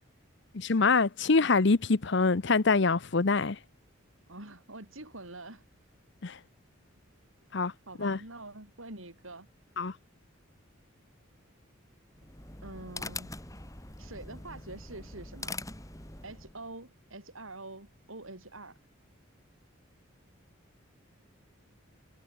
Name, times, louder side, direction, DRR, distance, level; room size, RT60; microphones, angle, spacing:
voice 1, 0.5-3.6 6.2-6.4 7.5-7.7 8.0-8.2 9.8-9.9, left 4 dB, 60° left, 0.8 m, -25 dB
voice 2, 4.3-5.6 7.9-9.5 12.6-13.4 14.0-15.6 16.2-18.8, right 2 dB, 75° right, 6.9 m, -45 dB
sound 1, 12.1-16.6, left 3 dB, 15° left, 5.7 m, -43 dB
head